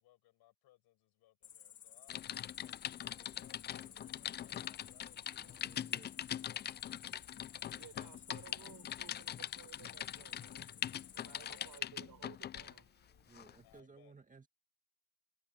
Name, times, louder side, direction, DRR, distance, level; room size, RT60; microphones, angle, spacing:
voice 1, 0.0-6.7 7.9-8.2 11.2-11.7 13.6-14.1, left 15 dB, 60° left, 6.9 m, -68 dB
Cricket, 1.4-11.8, left 9 dB, 40° left, 3.1 m, -56 dB
Typing, 2.1-12.8 13.3-13.5, left 10 dB, 25° left, 0.4 m, -42 dB
sound 1, 2.9-5.9 6.4-9.4 10.0-13.5, right 32 dB, 80° right, 5.9 m, -76 dB
voice 2, 5.4-6.2 13.3-14.5, right 4 dB, 20° right, 2.1 m, -59 dB
voice 3, 7.7-10.7 11.1-12.9, right 11 dB, 50° right, 6.0 m, -57 dB
supercardioid pair, 85°, 42 cm